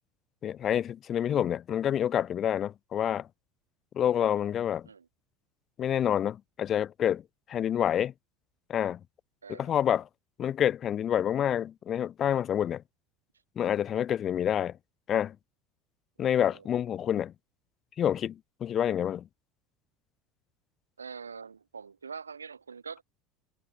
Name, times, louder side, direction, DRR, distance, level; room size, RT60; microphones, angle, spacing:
voice 1, 0.4-3.3 3.9-4.9 5.8-7.2 7.5-8.1 8.7-9.0 9.5-10.1 10.4-12.8 13.6-14.7 15.1-15.4 16.2-17.3 18.0-19.2, left 10 dB, 40° left, 2.1 m, -28 dB
voice 2, 16.2-16.7 21.0-23.0, right 5 dB, 80° right, 3.7 m, -44 dB
figure-of-eight pair, 70°, 0 cm